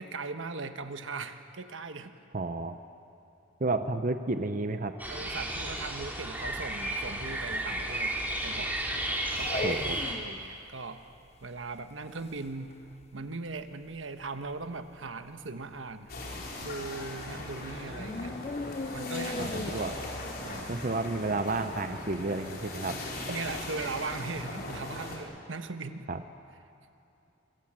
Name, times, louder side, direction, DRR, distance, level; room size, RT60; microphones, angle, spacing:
voice 1, 0.0-2.1 5.1-8.2 8.4-8.8 9.1-11.0 11.4-12.8 13.1-16.1 16.6-18.4 18.9-20.0 20.4-20.7 23.3-26.1, right 3 dB, 75° right, 8 dB, 1.3 m, -39 dB
voice 2, 2.3-2.8 3.6-5.0 9.6-10.0 19.4-19.9 20.7-23.0 26.1-26.2, right 3 dB, 40° right, 8 dB, 0.7 m, -31 dB
sound 1, 5.0-10.2, right 1 dB, 10° right, 2.9 m, -33 dB
sound 2, 9.0-10.5 10.9-11.0 11.1-13.4 13.7-13.9 14.2-14.8 15.1-15.2 15.6-15.7 16.1-17.4 17.7-19.7, left 3 dB, 35° left, 0.6 m, -38 dB
sound 3, 16.1-25.2, left 2 dB, 50° left, 4.4 m, -39 dB
26.0 x 24.5 x 7.6 m, 2.7 s
head